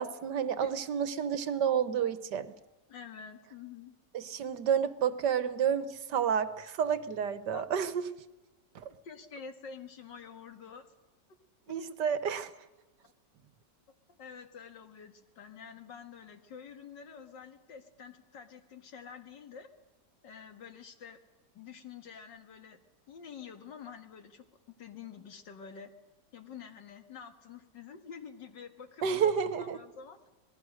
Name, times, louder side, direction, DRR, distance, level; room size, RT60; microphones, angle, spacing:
voice 1, 0.0-2.5 4.1-8.0 8.7-8.9 11.7-12.5 29.0-29.8, right 8 dB, 75° right, 14 dB, 1.7 m, -30 dB
voice 2, 2.9-3.9 7.5-7.7 9.0-10.9 11.7-12.0 14.2-19.7 20.2-21.2 21.5-22.8 23.1-24.4 24.8-25.9 26.3-30.2, left 6 dB, 80° left, 7 dB, 2.4 m, -48 dB
26.5 x 19.5 x 6.5 m, 1.1 s
omnidirectional pair, 1.9 m